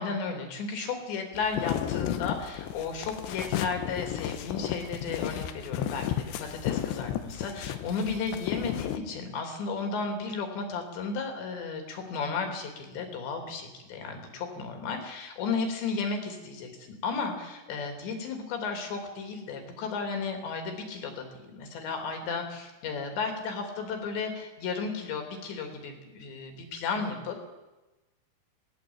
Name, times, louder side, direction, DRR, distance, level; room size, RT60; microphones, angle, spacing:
voice 1, 0.0-27.5, left 4 dB, 60° left, 4 dB, 5.0 m, -34 dB
sound 1, 1.3-9.0, left 11 dB, 75° left, 2.8 m, -33 dB
18.5 x 17.5 x 8.8 m, 1.1 s
omnidirectional pair, 5.9 m